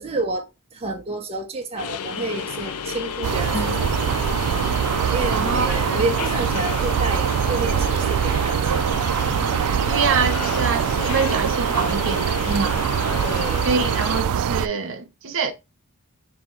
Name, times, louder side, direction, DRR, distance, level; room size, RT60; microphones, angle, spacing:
voice 1, 0.0-4.2 5.1-8.9 12.4-12.8 13.2-13.7, right 2 dB, 25° right, 0.6 m, -30 dB
sound 1, 1.8-14.2, left 7 dB, 80° left, 0.5 m, -32 dB
sound 2, 3.2-14.7, right 8 dB, 85° right, 0.3 m, -23 dB
sound 3, 3.5-7.2, left 2 dB, 15° left, 0.7 m, -37 dB
voice 2, 5.3-6.0 9.9-12.8 13.6-15.5, right 5 dB, 60° right, 0.7 m, -25 dB
3.6 x 2.7 x 4.3 m
head